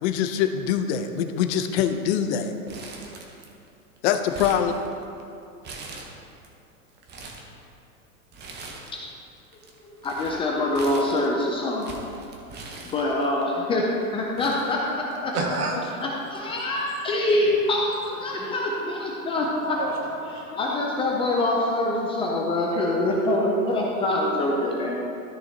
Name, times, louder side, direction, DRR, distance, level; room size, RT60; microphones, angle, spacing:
voice 1, 0.0-2.5 4.0-4.7, left 9 dB, 50° left, 8 dB, 0.7 m, -24 dB
Crumpling crinkling, 2.7-3.7 4.0-5.2 5.6-6.5 6.9-7.5 8.3-9.1 9.4-13.4 14.0-14.1 14.4-15.4 15.7-15.8 16.8-17.0, right 3 dB, 20° right, 1.0 m, -41 dB
voice 2, 9.8-11.9 12.8-13.9 14.1-15.3 16.0-19.8 20.5-25.0, left 1 dB, 15° left, -2 dB, 0.4 m, -25 dB
voice 3, 15.3-15.9 16.9-17.2 17.5-17.6 18.3-18.4 19.7-20.5, right 3 dB, 80° right, -1 dB, 1.9 m, -30 dB
13.5 x 6.1 x 2.8 m, 2.6 s
hypercardioid pair, 125°, 45 cm